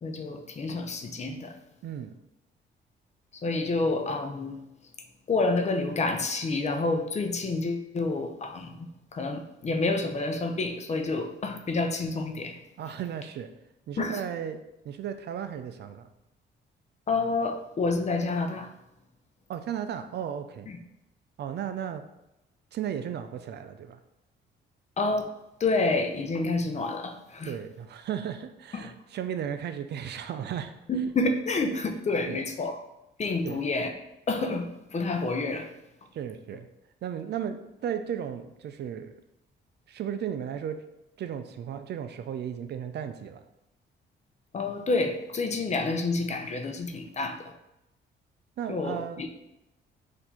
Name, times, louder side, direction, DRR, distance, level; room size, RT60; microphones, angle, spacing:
voice 1, 0.0-1.6 3.3-4.6 5.3-12.6 14.0-14.2 17.1-18.7 20.7-20.8 25.0-25.3 25.6-27.5 28.7-28.9 30.9-32.8 33.2-33.9 34.3-35.7 44.5-47.5 48.7-49.3, left 3 dB, 35° left, 6 dB, 0.6 m, -29 dB
voice 2, 1.8-2.1 12.8-13.5 13.9-14.6 14.8-16.1 19.5-20.7 21.4-22.0 22.7-24.0 27.5-30.7 32.3-32.4 33.4-33.6 36.1-36.7 37.0-39.1 39.9-40.8 41.2-43.4 48.6-49.2, right 9 dB, 60° right, 9 dB, 0.4 m, -35 dB
4.2 x 2.7 x 4.3 m, 0.88 s
cardioid pair, 90°, 20 cm